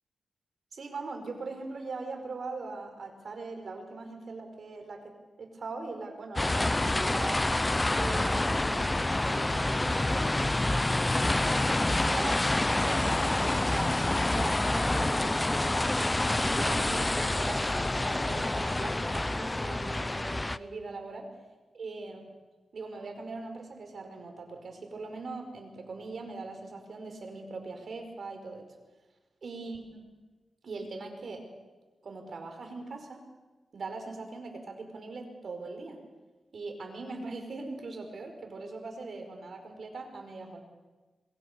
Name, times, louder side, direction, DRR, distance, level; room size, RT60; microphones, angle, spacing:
voice 1, 0.7-7.5 8.0-14.0 14.3-21.3 21.7-22.2 22.7-28.7 29.4-30.0 30.6-31.5 32.0-33.3 33.7-36.0 36.5-40.6, right 3 dB, 60° right, 4 dB, 5.2 m, -41 dB
sound 1, 6.4-20.6, left 2 dB, 15° left, 0.7 m, -27 dB
26.5 x 22.5 x 7.0 m, 1.2 s
wide cardioid pair, 110°, 0 cm